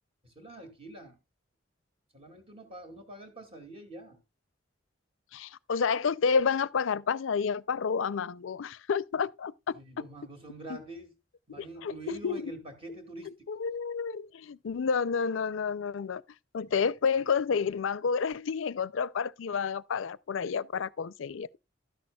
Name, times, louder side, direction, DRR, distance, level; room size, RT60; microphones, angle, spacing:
voice 1, 0.2-1.2 2.1-4.2 9.7-11.1 11.5-13.5, right 1 dB, 30° right, 2.2 m, -45 dB
voice 2, 5.3-10.1 10.7-10.8 11.5-12.5 13.5-16.2 16.5-21.6, left 6 dB, 80° left, 0.4 m, -30 dB
12.5 x 10.5 x 2.3 m
head